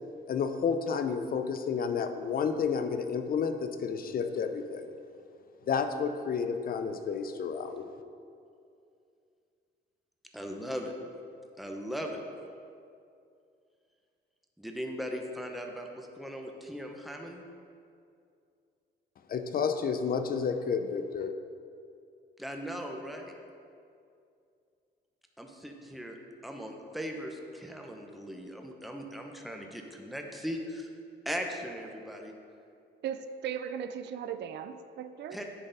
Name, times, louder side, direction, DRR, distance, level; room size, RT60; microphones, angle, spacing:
voice 1, 0.3-4.9 5.7-7.8 19.3-21.3, left 6 dB, 50° left, 8 dB, 0.5 m, -31 dB
voice 2, 10.3-10.9 11.6-12.2 14.6-17.4 22.4-23.3 25.4-26.2 26.4-30.9 31.2-32.3 35.3-35.4, equal, ahead, 2 dB, 0.8 m, -38 dB
voice 3, 33.0-35.4, right 8 dB, 60° right, 10 dB, 0.4 m, -37 dB
10.0 x 3.9 x 4.0 m, 2.5 s
cardioid pair, 90°, 20 cm